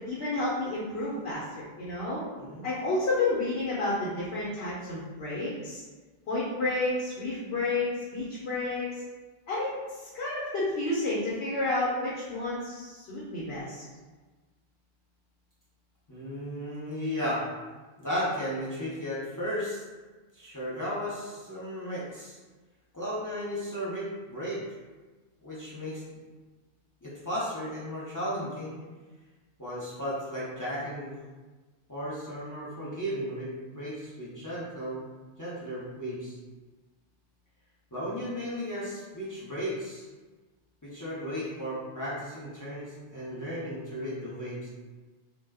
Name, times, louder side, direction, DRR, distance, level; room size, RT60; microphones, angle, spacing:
voice 1, 0.0-2.2 2.6-5.8 6.3-9.0 9.5-9.7 10.0-13.8, left 2 dB, 90° left, -7 dB, 0.9 m, -30 dB
voice 2, 16.1-17.4 18.0-19.8 20.3-22.4 22.9-24.6 25.4-26.0 27.0-28.8 29.6-31.2 31.9-35.0 35.4-36.4 37.9-40.1 40.8-44.7, equal, 25° left, -9 dB, 0.5 m, -35 dB
2.2 x 2.1 x 3.4 m, 1.3 s
omnidirectional pair, 1.0 m